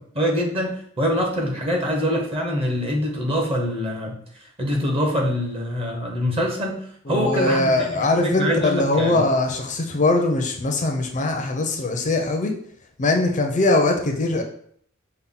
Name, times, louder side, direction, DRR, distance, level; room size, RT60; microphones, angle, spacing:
voice 1, 0.1-4.2 4.6-6.8 7.1-9.2, equal, 30° right, 0 dB, 0.9 m, -24 dB
voice 2, 7.1-12.5 13.0-14.4, left 2 dB, 35° left, 3 dB, 0.5 m, -21 dB
5.5 x 2.1 x 3.6 m, 0.63 s
head